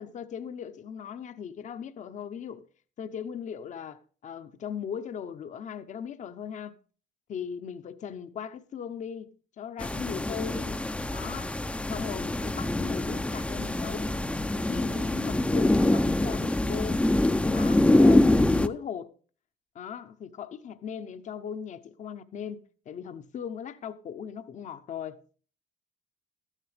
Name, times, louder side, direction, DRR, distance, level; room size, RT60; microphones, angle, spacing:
voice 1, 0.0-2.7 3.0-6.8 7.3-10.9 11.1-11.5 11.9-14.2 14.5-17.0 17.5-19.1 19.7-25.2, left 8 dB, 45° left, 0.8 m, -38 dB
sound 1, 9.8-18.7, left 1 dB, 5° left, 0.5 m, -25 dB
13.0 x 11.0 x 3.3 m
cardioid pair, 110°, 17 cm